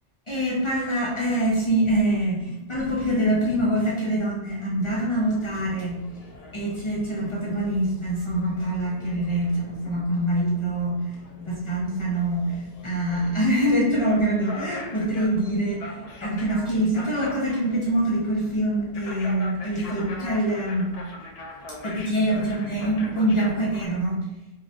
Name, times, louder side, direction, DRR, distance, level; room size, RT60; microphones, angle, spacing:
voice 1, 0.3-6.0 6.5-11.0 11.4-20.9 21.8-24.2, right 1 dB, 45° left, -4 dB, 0.4 m, -25 dB
sound 1, 4.8-23.9, left 2 dB, 70° left, 0.8 m, -42 dB
3.1 x 2.4 x 2.5 m, 0.98 s
omnidirectional pair, 1.1 m